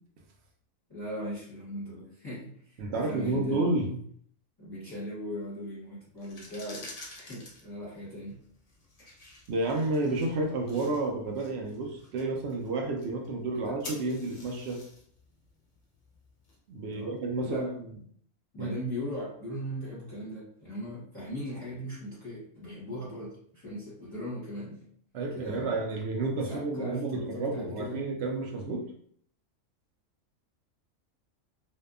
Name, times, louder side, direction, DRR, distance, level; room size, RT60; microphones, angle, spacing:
voice 1, 0.9-3.7 4.6-8.4 9.0-9.1 13.5-13.7 16.9-17.2 17.4-17.7 18.5-24.8 25.3-25.8 26.4-28.0, equal, 20° left, -10 dB, 0.9 m, -38 dB
voice 2, 2.8-3.9 9.5-14.8 16.7-17.9 18.6-18.7 25.1-28.8, right 2 dB, 65° right, 2 dB, 0.7 m, -31 dB
sound 1, 6.1-17.0, left 2 dB, 55° left, 0.4 m, -50 dB
2.7 x 2.3 x 2.3 m, 0.62 s
omnidirectional pair, 1.4 m